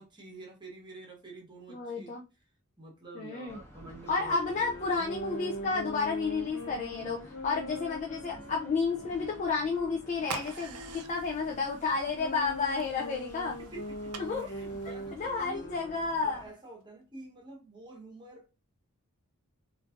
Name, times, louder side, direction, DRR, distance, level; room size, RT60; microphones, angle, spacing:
voice 1, 0.0-2.2 2.8-4.8 13.7-15.7 16.2-18.6, right 2 dB, 20° right, 0.9 m, -48 dB
voice 2, 1.7-2.2 3.1-3.6 4.1-13.6 14.2-14.5 15.2-16.4, left 4 dB, 30° left, 0.3 m, -31 dB
sound 1, 3.5-16.5, equal, 10° left, 0.8 m, -52 dB
Wind instrument woodwind instrument, 4.1-10.0 10.7-16.1, equal, 55° left, 0.8 m, -41 dB
sound 2, 10.2-15.4, right 6 dB, 80° right, 0.5 m, -46 dB
3.8 x 2.5 x 2.4 m
head